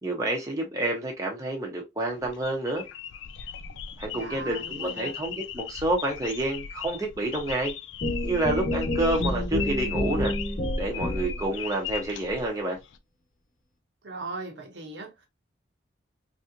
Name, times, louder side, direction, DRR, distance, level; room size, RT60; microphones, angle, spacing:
voice 1, 0.0-2.8 4.0-7.7 8.2-10.3 10.8-12.8, right 1 dB, 20° right, 0.8 m, -29 dB
sound 1, 2.1-13.0, left 8 dB, 75° left, 0.3 m, -39 dB
voice 2, 4.1-5.2 14.0-15.3, right 3 dB, 75° right, 1.0 m, -39 dB
sound 2, 8.0-11.5, left 1 dB, 40° left, 0.9 m, -29 dB
3.4 x 2.6 x 2.6 m
head